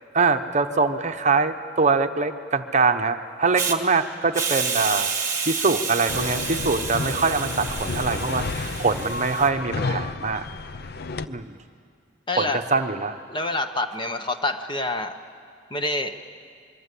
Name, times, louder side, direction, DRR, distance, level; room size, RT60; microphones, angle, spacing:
voice 1, 0.1-5.1 5.5-10.4 11.3-11.6 12.4-13.1, right 4 dB, 40° right, 7 dB, 0.9 m, -23 dB
Hiss, 3.5-3.8 4.3-9.5, right 5 dB, 15° right, 1.9 m, -29 dB
sound 1, 6.1-11.3, left 3 dB, 55° left, 0.6 m, -31 dB
voice 2, 12.3-12.6 13.3-15.2 15.7-16.4, left 2 dB, 25° left, 7 dB, 1.0 m, -27 dB
25.0 x 23.0 x 8.4 m, 2.3 s
head